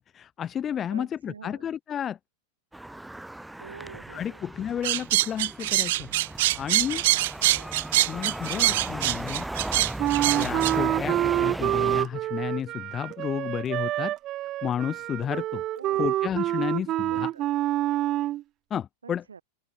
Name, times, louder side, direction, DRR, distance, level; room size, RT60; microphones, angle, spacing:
voice 1, 0.1-2.2 4.1-6.1 6.6-7.0 8.1-9.5 10.4-14.1 14.6-15.6 16.0-17.3 18.7-19.2, left 9 dB, 25° left, 0.5 m, -31 dB
voice 2, 0.9-1.7 3.6-4.5 7.4-7.8 15.7-16.2 17.1-17.5 19.0-19.4, right 6 dB, 70° right, 2.7 m, -46 dB
sound 1, 2.7-12.0, right 1 dB, 5° right, 0.9 m, -36 dB
sound 2, 4.8-10.7, right 17 dB, 55° right, 0.8 m, -24 dB
Wind instrument woodwind instrument, 10.0-18.4, right 14 dB, 35° right, 1.2 m, -27 dB
open air
figure-of-eight pair, 90°, 0 cm